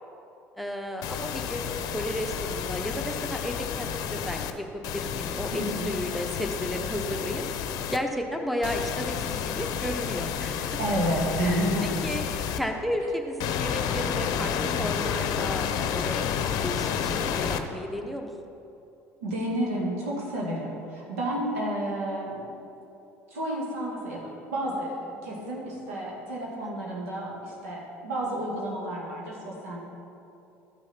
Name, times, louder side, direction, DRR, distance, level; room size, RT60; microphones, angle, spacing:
voice 1, 0.6-1.7 1.9-7.4 7.9-10.7 12.0-12.2 12.5-16.2 16.6-18.3 26.6-26.9, equal, ahead, 3 dB, 1.0 m, -33 dB
sound 1, 1.0-4.5 4.8-8.0 8.6-12.6 13.4-17.6, left 8 dB, 60° left, 0.6 m, -30 dB
voice 2, 5.5-5.9 10.8-11.9 19.2-22.5 23.3-29.8, right 1 dB, 90° right, -4 dB, 2.0 m, -31 dB
12.5 x 6.2 x 4.4 m, 2.8 s
hypercardioid pair, 70°, 7 cm